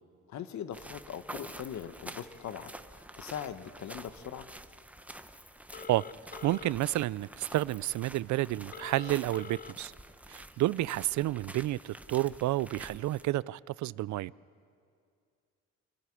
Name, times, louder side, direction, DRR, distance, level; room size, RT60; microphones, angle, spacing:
voice 1, 0.3-4.5, left 9 dB, 65° left, 1.2 m, -41 dB
sound 1, 0.7-13.3, right 1 dB, 5° right, 0.9 m, -48 dB
Telephone, 5.7-6.7 8.7-9.7, left 6 dB, 30° left, 0.4 m, -45 dB
voice 2, 6.4-9.9 10.3-14.3, right 16 dB, 70° right, 0.4 m, -30 dB
25.5 x 13.0 x 9.9 m
cardioid pair, 90°, 30 cm